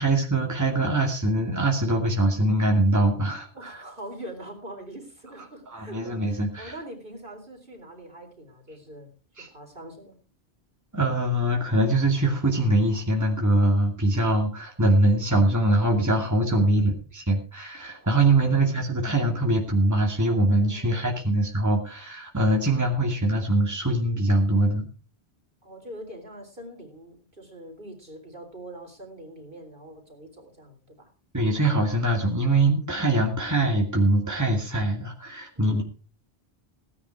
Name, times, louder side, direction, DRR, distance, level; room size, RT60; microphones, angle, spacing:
voice 1, 0.0-3.7 5.7-6.7 9.4-9.5 10.9-24.9 31.3-35.8, right 1 dB, 15° right, 1 dB, 2.4 m, -23 dB
voice 2, 3.5-9.1 9.5-10.2 16.5-17.0 18.0-18.6 20.6-21.0 25.6-31.1 35.6-35.8, right 1 dB, 55° right, 3 dB, 4.2 m, -43 dB
17.5 x 9.9 x 4.7 m, 0.35 s
omnidirectional pair, 1.1 m